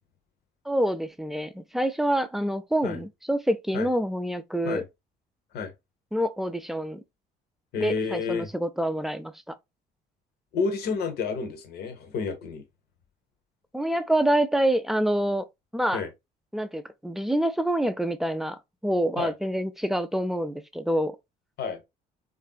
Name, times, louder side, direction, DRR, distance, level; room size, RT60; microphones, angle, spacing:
voice 1, 0.7-4.8 6.1-7.0 7.8-9.6 13.7-15.5 15.7-16.0 16.5-21.2, right 1 dB, ahead, 0.3 m, -26 dB
voice 2, 7.7-8.5 10.5-12.6 15.9-16.1 19.2-19.3 21.6-21.8, left 5 dB, 70° left, 0.9 m, -30 dB
3.5 x 2.5 x 2.2 m
cardioid pair, 110°, 17 cm